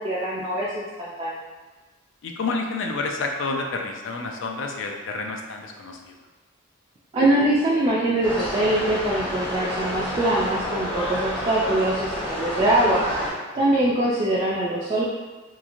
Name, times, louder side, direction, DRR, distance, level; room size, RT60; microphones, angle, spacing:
voice 1, 0.0-1.4 7.1-13.0 13.5-15.0, right 1 dB, 30° right, -7 dB, 0.3 m, -23 dB
voice 2, 2.2-6.2 13.7-13.9, left 3 dB, 70° left, 2 dB, 0.4 m, -29 dB
sound 1, 8.2-13.3, equal, 25° left, 0.7 m, -29 dB
3.0 x 2.4 x 2.5 m, 1.3 s
head